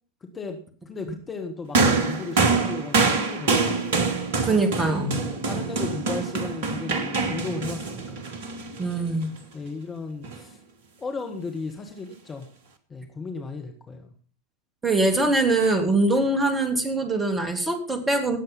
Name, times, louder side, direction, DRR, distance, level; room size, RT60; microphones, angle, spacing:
voice 1, 0.2-0.6 0.9-3.9 5.0-8.3 9.5-10.6 11.0-12.5 12.9-14.1, left 4 dB, 20° left, 4 dB, 1.7 m, -35 dB
sound 1, 1.7-9.3 10.2-10.4, right 4 dB, 55° right, 1.7 m, -25 dB
voice 2, 4.4-5.2 8.8-9.3 14.8-18.4, right 2 dB, 15° right, 6 dB, 2.9 m, -23 dB
18.5 x 7.7 x 5.5 m, 0.43 s
figure-of-eight pair, 90°, 0 cm